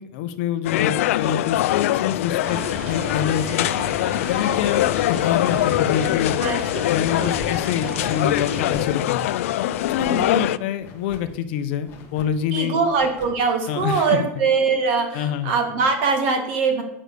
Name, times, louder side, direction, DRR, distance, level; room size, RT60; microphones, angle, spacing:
voice 1, 0.0-3.7 4.2-6.4 6.9-9.2 9.6-12.8 13.7-14.3 15.1-15.5, left 9 dB, 50° left, 10 dB, 0.7 m, -26 dB
sound 1, 0.7-10.6, left 14 dB, 90° left, 0.4 m, -23 dB
sound 2, 2.1-4.2 4.5-5.1 5.4-6.8 7.2-7.9 8.4-9.1 9.7-10.3 10.8-11.4 11.8-12.4 12.8-13.5, left 5 dB, 30° left, 1.2 m, -44 dB
sound 3, 2.4-8.8, right 1 dB, 90° right, 4.4 m, -34 dB
voice 2, 6.4-6.8 7.1-7.3 10.0-10.3 12.5-16.8, right 5 dB, 55° right, 4 dB, 2.0 m, -22 dB
8.7 x 6.2 x 6.8 m, 0.85 s
supercardioid pair, 175°, 7 cm